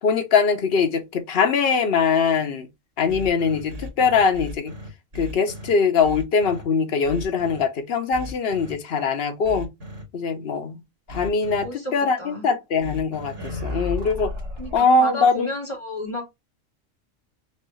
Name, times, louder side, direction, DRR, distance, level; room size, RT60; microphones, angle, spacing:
voice 1, 0.0-2.7 3.0-4.7 5.1-9.7 10.1-10.8 11.1-11.7 11.9-14.3 14.7-15.5, left 5 dB, 55° left, 0.8 m, -22 dB
sound 1, 3.1-5.7 6.0-6.6 7.0-7.6 8.1-8.7 9.4-10.0 11.1-11.6 12.8-14.8, left 2 dB, 65° right, 1.9 m, -34 dB
voice 2, 11.6-12.5 14.6-16.3, left 2 dB, 25° left, 1.1 m, -32 dB
4.4 x 2.3 x 3.0 m
omnidirectional pair, 1.3 m